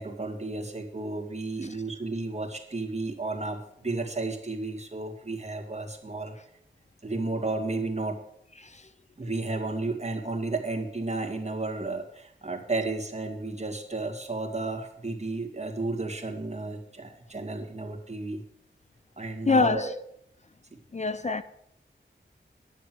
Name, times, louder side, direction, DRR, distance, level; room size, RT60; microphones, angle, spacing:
voice 1, 0.0-6.3 7.0-8.2 9.2-18.4 19.2-19.9 20.7-20.8 21.2-21.3, right 2 dB, 35° right, 2.2 m, -33 dB
voice 2, 19.5-19.9 20.9-21.4, left 4 dB, 35° left, 0.5 m, -25 dB
11.0 x 6.9 x 7.7 m
wide cardioid pair, 55°, 20 cm